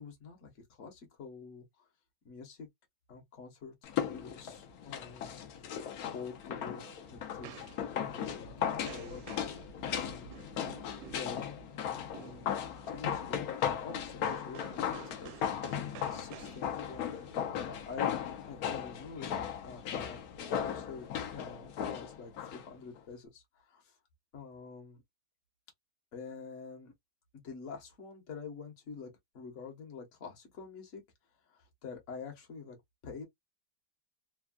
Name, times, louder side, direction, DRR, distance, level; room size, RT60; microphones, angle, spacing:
voice 1, 0.0-1.6 2.2-2.7 3.1-3.7 4.0-5.3 6.1-9.2 10.0-10.3 11.1-11.4 11.9-12.5 12.9-17.1 17.7-23.9 24.3-25.0 26.1-26.9 27.3-31.0 31.5-32.8 33.0-33.3, left 5 dB, 45° left, 1.2 m, -47 dB
sound 1, 3.8-22.7 23.0-23.1, left 8 dB, 65° left, 1.0 m, -37 dB
sound 2, 6.3-18.7, right 11 dB, 85° right, 1.3 m, -54 dB
3.4 x 2.2 x 2.3 m
omnidirectional pair, 2.0 m